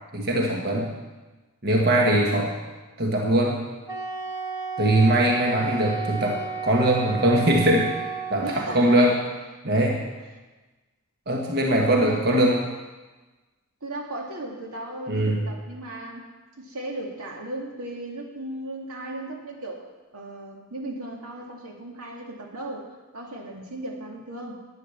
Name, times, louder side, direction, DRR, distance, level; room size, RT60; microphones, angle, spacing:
voice 1, 0.1-0.9 1.6-2.5 3.0-3.6 4.8-7.9 8.3-9.1 9.6-10.0 11.3-12.7 15.1-15.4, right 1 dB, 45° right, -1 dB, 1.4 m, -21 dB
Wind instrument woodwind instrument, 3.9-8.8, right 5 dB, 15° right, 1.1 m, -32 dB
voice 2, 8.4-9.0 11.7-12.4 13.8-16.2 16.6-24.6, right 1 dB, 80° right, 0 dB, 2.3 m, -36 dB
11.5 x 9.7 x 6.8 m, 1.2 s
head